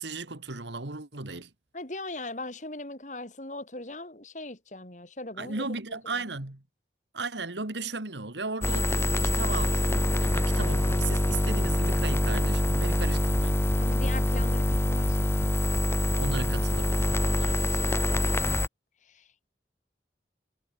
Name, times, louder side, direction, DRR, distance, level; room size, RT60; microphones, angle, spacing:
voice 1, 0.0-1.5 5.4-6.6 7.1-13.6 16.1-18.1, right 3 dB, 90° right, 2.3 m, -36 dB
voice 2, 1.7-5.6 5.9-6.0 13.8-15.5 19.1-19.5, left 2 dB, 45° left, 3.2 m, -40 dB
sound 1, 8.6-18.7, left 1 dB, 15° left, 0.8 m, -25 dB
head